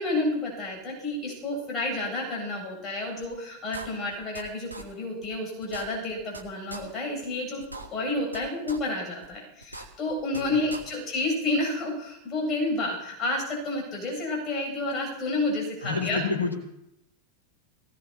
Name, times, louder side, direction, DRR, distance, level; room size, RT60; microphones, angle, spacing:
voice 1, 0.0-7.6 7.9-16.2, left 2 dB, 30° left, -1 dB, 8.0 m, -30 dB
sound 1, 3.2-3.3 3.7-4.4 4.7-4.8 5.2-5.3 5.6-6.4 6.7-6.8 7.2-7.3 7.6-8.4 8.7-8.8 9.2-9.3 9.6-10.4 10.7-10.8, right 2 dB, 85° right, 1.6 m, -40 dB
voice 2, 10.3-10.7 15.8-16.5, left 4 dB, 80° left, -3 dB, 3.6 m, -29 dB
20.5 x 18.0 x 2.9 m, 0.82 s
figure-of-eight pair, 90°, 0 cm